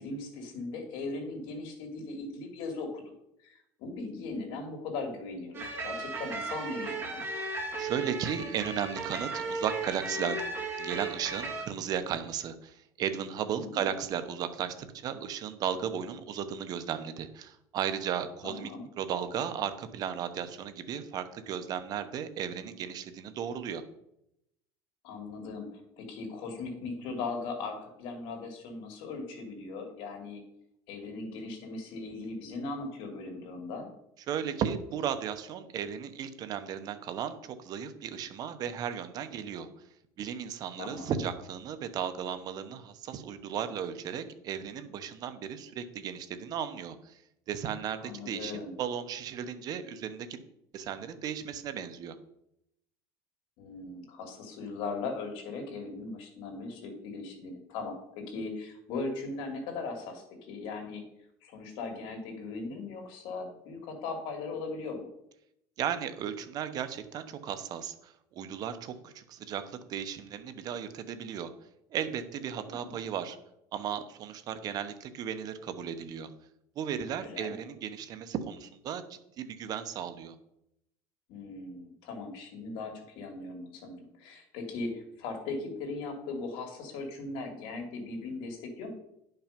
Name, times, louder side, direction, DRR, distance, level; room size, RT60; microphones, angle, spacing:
voice 1, 0.0-3.0 3.4-7.2 13.5-13.8 18.4-18.8 25.0-30.4 30.9-33.9 40.8-41.2 48.0-48.8 53.6-61.0 61.4-65.1 72.6-72.9 77.2-77.5 81.3-88.9, left 3 dB, 65° left, 2 dB, 2.8 m, -39 dB
sound 1, 5.5-11.6, right 3 dB, 25° right, 2.3 m, -35 dB
voice 2, 7.8-10.4 10.8-18.7 19.0-23.8 34.3-39.7 40.2-47.2 47.5-50.4 50.7-52.2 65.8-71.5 71.9-73.4 73.7-76.3 76.8-80.4, right 8 dB, 45° right, 10 dB, 1.0 m, -35 dB
10.5 x 5.8 x 5.2 m, 0.79 s
cardioid pair, 140°, 9 cm